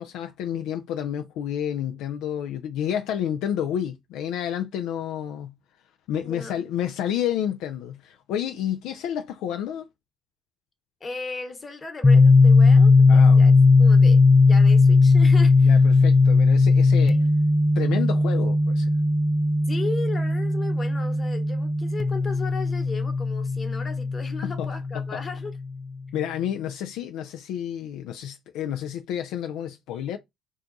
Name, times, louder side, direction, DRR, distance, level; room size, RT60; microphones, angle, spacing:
voice 1, 0.0-5.5 6.1-9.9 13.1-13.4 15.6-17.2 17.8-18.9 24.4-24.7 25.1-25.2 26.1-30.2, left 10 dB, 75° left, 0.3 m, -30 dB
voice 2, 6.2-6.6 11.0-13.5 13.8-15.8 17.0-17.3 19.7-25.5, left 3 dB, 30° left, 1.1 m, -36 dB
sound 1, 12.0-25.7, left 3 dB, 15° left, 0.5 m, -18 dB
2.3 x 2.3 x 3.9 m
supercardioid pair, 70°, 0 cm